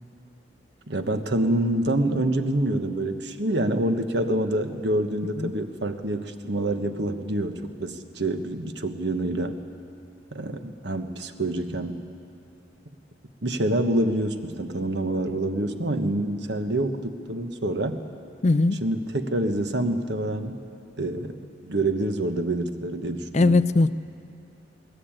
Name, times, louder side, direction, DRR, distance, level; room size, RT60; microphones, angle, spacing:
voice 1, 0.9-9.6 10.3-12.0 13.4-18.0 18.8-20.6 21.0-21.4 21.6-23.6, right 1 dB, 60° right, 7 dB, 1.3 m, -26 dB
voice 2, 18.4-18.8 23.3-23.9, left 2 dB, 35° left, 15 dB, 0.4 m, -20 dB
21.0 x 18.0 x 8.9 m, 2.6 s
head